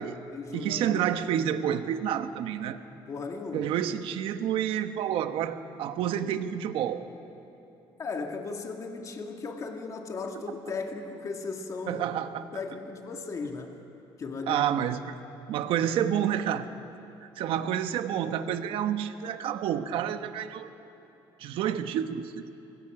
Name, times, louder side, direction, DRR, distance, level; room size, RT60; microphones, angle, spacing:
voice 1, 0.0-1.1 3.1-3.7 8.0-12.1 12.5-13.7 14.2-14.6 17.6-17.7, left 4 dB, 35° left, 3 dB, 1.9 m, -36 dB
voice 2, 0.5-2.8 3.5-7.1 11.9-12.5 14.5-15.2 15.5-16.7 17.2-20.7 21.4-22.4, right 9 dB, 70° right, 9 dB, 1.2 m, -29 dB
25.5 x 21.5 x 6.0 m, 2.8 s
cardioid pair, 135°, 9 cm